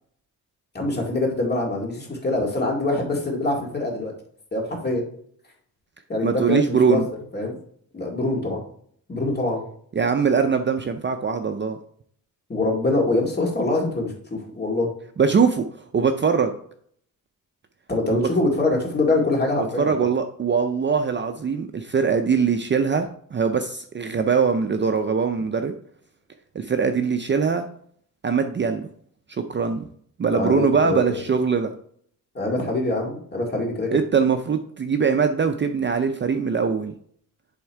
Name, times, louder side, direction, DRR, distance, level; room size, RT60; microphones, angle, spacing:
voice 1, 0.7-4.1 4.5-5.1 6.1-7.0 7.3-7.6 7.9-8.6 9.1-9.6 12.5-14.9 17.9-20.1 30.3-31.2 32.3-33.9, left 2 dB, 30° left, -1 dB, 2.1 m, -24 dB
voice 2, 6.2-7.0 10.0-11.8 15.2-15.6 15.9-16.5 19.8-25.7 26.5-27.6 28.2-28.9 29.4-29.8 30.2-31.7 33.9-36.9, right 6 dB, 30° right, 6 dB, 0.5 m, -22 dB
10.5 x 3.6 x 4.6 m, 0.62 s
wide cardioid pair, 140°, 36 cm